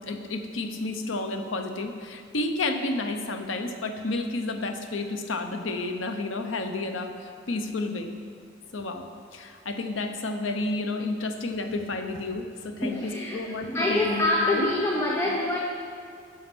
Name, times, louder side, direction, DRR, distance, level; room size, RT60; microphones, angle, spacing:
voice 1, 0.0-8.1 8.7-14.7, left 2 dB, 80° left, 6 dB, 0.8 m, -31 dB
voice 2, 12.8-15.6, left 2 dB, 15° left, -2 dB, 0.7 m, -26 dB
9.5 x 6.4 x 6.2 m, 2.3 s
head